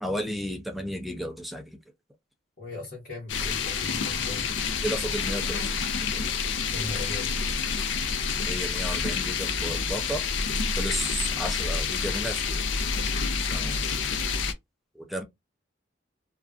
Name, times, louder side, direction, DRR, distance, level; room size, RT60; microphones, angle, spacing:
voice 1, 0.0-1.6 4.8-5.8 6.1-6.2 8.5-10.2 10.8-12.6 13.5-13.8 15.0-15.2, equal, ahead, 0.3 m, -33 dB
voice 2, 2.6-4.4 6.7-7.3, left 2 dB, 50° left, 1.0 m, -38 dB
sound 1, 3.3-14.5, left 5 dB, 80° left, 0.4 m, -28 dB
2.4 x 2.2 x 2.3 m
head